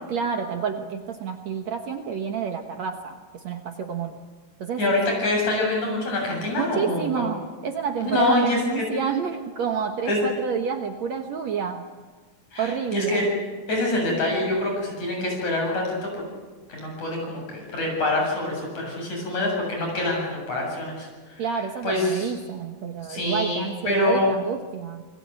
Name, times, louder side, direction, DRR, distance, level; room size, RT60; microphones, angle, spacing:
voice 1, 0.1-4.2 4.6-4.8 6.6-11.8 12.6-13.3 21.4-25.0, right 6 dB, 60° right, 5 dB, 2.2 m, -29 dB
voice 2, 4.8-7.3 8.0-8.8 10.1-10.2 12.5-13.3 13.7-16.1 16.7-21.4 21.8-22.3 23.1-24.3, left 1 dB, 50° left, 0 dB, 9.1 m, -25 dB
28.0 x 21.5 x 9.0 m, 1.4 s
omnidirectional pair, 4.1 m